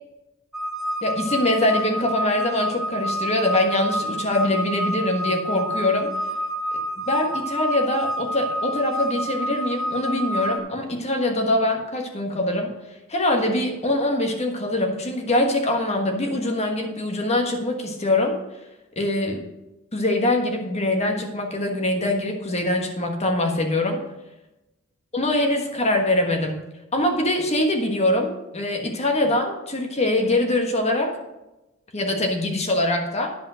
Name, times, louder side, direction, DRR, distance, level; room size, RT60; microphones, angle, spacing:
sound 1, 0.5-10.6, right 1 dB, ahead, 0.8 m, -28 dB
voice 1, 1.0-6.1 7.0-12.7 13.1-18.4 19.0-19.4 19.9-24.0 25.1-26.6 26.9-31.1 31.9-33.3, left 1 dB, 30° left, 3 dB, 1.4 m, -23 dB
10.0 x 5.3 x 6.2 m, 0.99 s
head